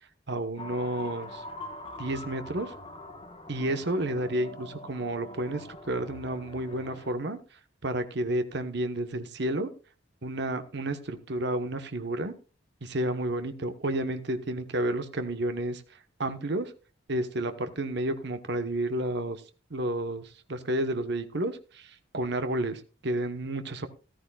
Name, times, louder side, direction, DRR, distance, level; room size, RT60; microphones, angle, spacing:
voice 1, 0.3-1.4 2.0-2.7 3.5-7.4 7.8-9.7 10.2-12.3 12.8-15.8 16.2-16.7 17.1-19.4 19.7-23.9, right 1 dB, 60° right, 9 dB, 1.1 m, -31 dB
sound 1, 0.6-7.1, left 2 dB, 30° left, 1.4 m, -43 dB
14.0 x 13.5 x 2.3 m, 0.33 s
head